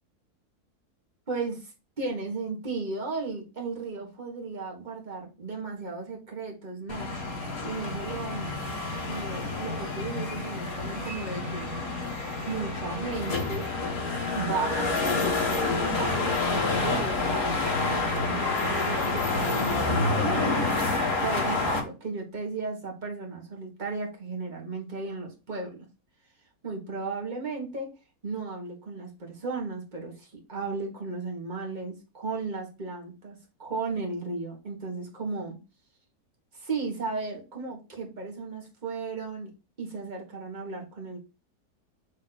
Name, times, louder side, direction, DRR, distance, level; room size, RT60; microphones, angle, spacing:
voice 1, 1.3-7.1 7.6-8.5 9.0-11.7 12.5-13.7 14.3-20.7 21.2-25.9 26.6-27.9 28.2-35.6 36.5-39.5 39.8-41.2, right 4 dB, 30° right, 0 dB, 1.7 m, -35 dB
sound 1, 6.9-21.8, left 3 dB, 65° left, 1.9 m, -28 dB
7.3 x 3.1 x 4.1 m, 0.30 s
omnidirectional pair, 1.6 m